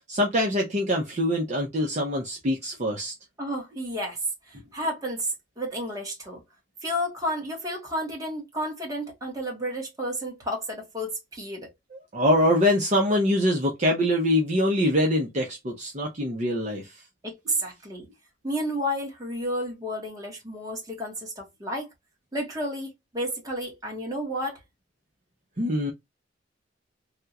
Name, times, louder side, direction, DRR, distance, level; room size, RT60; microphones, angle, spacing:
voice 1, 0.1-3.1 11.9-16.9 25.6-25.9, left 1 dB, 40° right, 0.7 m, -24 dB
voice 2, 3.4-4.2 4.5-5.3 5.6-6.4 6.8-11.7 17.2-18.1 18.4-21.9 22.3-24.6, equal, 20° right, 1.3 m, -31 dB
3.5 x 2.3 x 2.8 m
head